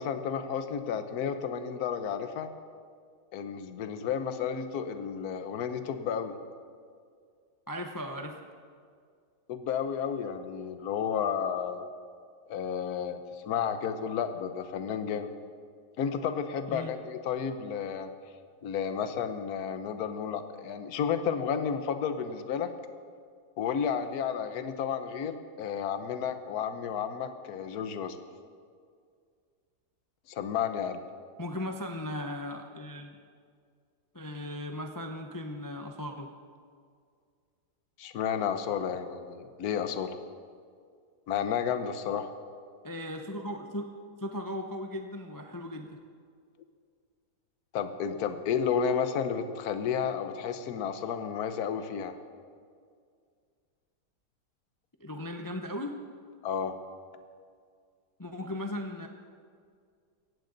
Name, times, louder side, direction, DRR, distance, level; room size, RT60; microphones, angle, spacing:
voice 1, 0.0-2.5 3.3-6.4 9.5-11.9 12.5-13.2 13.5-15.3 16.0-18.1 18.6-22.7 23.6-28.2 30.3-31.0 38.0-40.2 41.3-42.3 47.7-52.1 56.4-56.8, left 7 dB, 65° left, 9 dB, 1.3 m, -32 dB
voice 2, 7.7-8.4 16.7-16.9 31.4-33.2 34.1-36.3 42.8-43.9 44.2-46.0 55.0-55.9 58.2-59.1, left 1 dB, 25° left, 4 dB, 0.4 m, -37 dB
17.0 x 15.0 x 4.0 m, 2.1 s
omnidirectional pair, 1.8 m